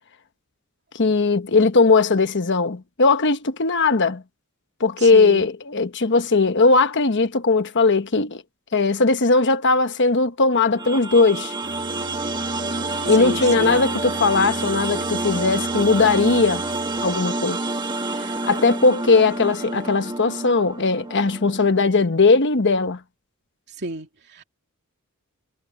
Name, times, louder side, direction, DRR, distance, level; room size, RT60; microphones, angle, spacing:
voice 1, 1.0-4.2 4.8-8.4 8.7-11.5 13.0-16.6 17.0-17.6 18.5-23.0, left 3 dB, 55° left, 1.2 m, -18 dB
voice 2, 5.0-5.5 13.0-13.9 23.8-24.4, right 2 dB, 50° right, 2.7 m, -32 dB
sound 1, 10.8-21.8, right 2 dB, 20° right, 1.5 m, -28 dB
Bowed string instrument, 11.6-17.5, right 1 dB, 80° right, 4.0 m, -38 dB
head